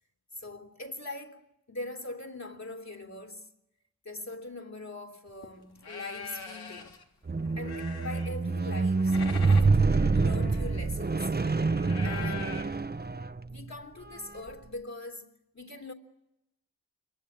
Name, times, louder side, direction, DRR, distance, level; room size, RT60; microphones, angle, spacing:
voice 1, 0.3-3.5 4.0-7.0 7.6-11.3 12.0-12.7 13.0-13.2 13.5-15.9, left 2 dB, 45° left, 3.3 m, -42 dB
sound 1, 5.3-5.5 5.8-7.0 7.4-8.6 8.8-12.6, left 5 dB, 90° left, 3.2 m, -43 dB
Squeak, 7.3-13.6 14.4-14.5, right 4 dB, 25° right, 1.0 m, -26 dB
28.0 x 23.0 x 8.8 m
cardioid pair, 50°, 36 cm